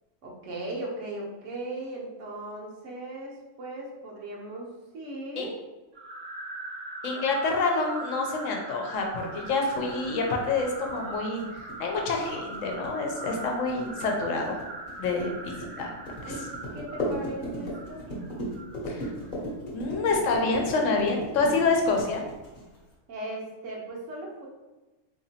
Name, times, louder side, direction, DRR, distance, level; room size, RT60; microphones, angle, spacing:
voice 1, 0.2-4.7 4.9-5.5 7.1-7.2 15.1-15.3 16.2-16.5 16.7-18.2 23.1-24.5, right 1 dB, 60° right, -2 dB, 1.1 m, -38 dB
sound 1, 5.9-19.3, right 2 dB, 85° right, 1.2 m, -41 dB
voice 2, 7.0-11.4 11.8-14.6 15.0-15.9 16.2-16.3 18.9-19.1 19.7-22.2, left 3 dB, 65° left, 2 dB, 1.0 m, -27 dB
sound 2, 9.2-22.9, equal, 40° left, 1.0 m, -37 dB
3.8 x 2.9 x 2.8 m, 1.1 s
omnidirectional pair, 1.5 m